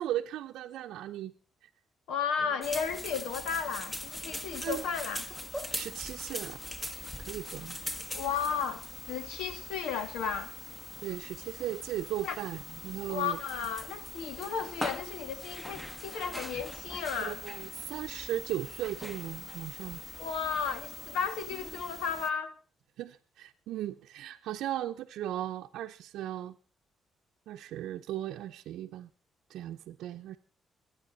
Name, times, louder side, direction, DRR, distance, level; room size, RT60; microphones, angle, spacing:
voice 1, 0.0-1.3 4.6-4.8 5.7-6.6 7.2-7.8 11.0-13.4 17.2-20.0 23.0-26.6 27.5-29.1 29.5-30.4, right 12 dB, 85° right, 0.7 m, -37 dB
voice 2, 2.1-5.2 8.1-10.5 12.2-12.4 13.1-17.4 20.2-22.5, left 6 dB, 90° left, 1.5 m, -34 dB
sound 1, 2.6-22.3, left 1 dB, 10° left, 1.4 m, -42 dB
25.5 x 9.4 x 4.1 m
cardioid pair, 90°, 0 cm